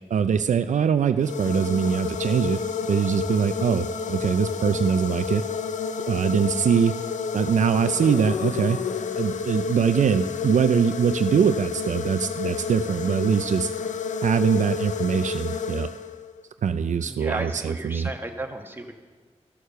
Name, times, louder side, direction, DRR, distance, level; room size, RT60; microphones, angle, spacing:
voice 1, 0.1-2.6 2.9-5.4 6.1-7.0 7.3-8.8 9.2-13.7 14.2-15.9 16.6-18.1, right 7 dB, 80° right, 10 dB, 0.4 m, -22 dB
sound 1, 1.2-16.4, left 6 dB, 80° left, 0.5 m, -30 dB
voice 2, 17.1-18.9, right 1 dB, 15° right, 3 dB, 1.3 m, -34 dB
13.0 x 6.5 x 6.7 m, 1.4 s
cardioid pair, 55°, 12 cm